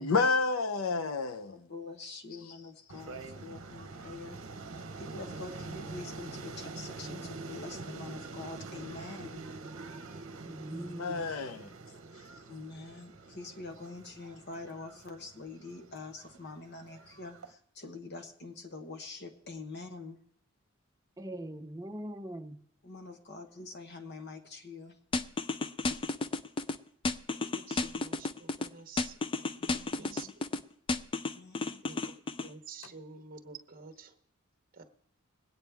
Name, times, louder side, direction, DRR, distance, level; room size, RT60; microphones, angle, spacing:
voice 1, 0.0-1.7 11.0-11.7, left 4 dB, 80° left, 0.7 m, -29 dB
voice 2, 1.5-4.4 4.7-9.4 10.7-10.9 12.5-20.2 22.8-25.0 29.6-30.3 31.3-31.8, left 3 dB, 55° left, 1.1 m, -45 dB
sound 1, 2.9-17.5, right 3 dB, 65° right, 0.9 m, -45 dB
voice 3, 10.4-11.3 21.2-22.6, right 1 dB, 15° right, 0.7 m, -41 dB
sound 2, 25.1-26.8 27.1-28.7 29.0-30.6 30.9-32.5, left 3 dB, 25° left, 0.4 m, -32 dB
voice 4, 27.3-30.3 31.8-32.1 32.4-34.1 34.7-34.8, right 5 dB, 40° right, 1.0 m, -49 dB
22.0 x 8.8 x 3.4 m
head